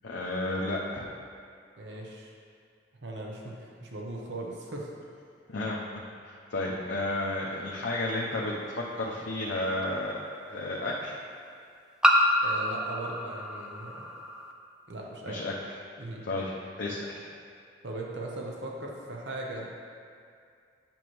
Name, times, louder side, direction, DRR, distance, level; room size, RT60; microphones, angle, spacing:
voice 1, 0.0-1.0 5.5-8.5 8.9-10.1 10.5-11.2 15.3-15.5 16.2-16.5 16.8-17.3, left 2 dB, 75° left, -5 dB, 0.7 m, -32 dB
voice 2, 1.8-2.3 3.0-4.9 12.4-14.1 14.9-15.4 16.0-16.3 17.8-19.7, right 2 dB, 70° right, -2 dB, 0.8 m, -38 dB
sound 1, 8.1-8.2 9.8-9.9 12.0-14.5, equal, 5° right, 0.4 m, -27 dB
8.8 x 6.0 x 3.1 m, 2.3 s
head